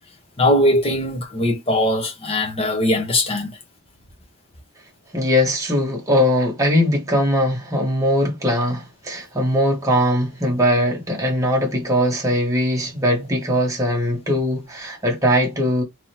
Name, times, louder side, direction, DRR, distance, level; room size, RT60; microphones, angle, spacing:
voice 1, 0.4-3.6, left 1 dB, 25° left, 1.2 m, -20 dB
voice 2, 5.1-15.8, equal, 15° right, 1.3 m, -20 dB
3.7 x 3.1 x 2.9 m
head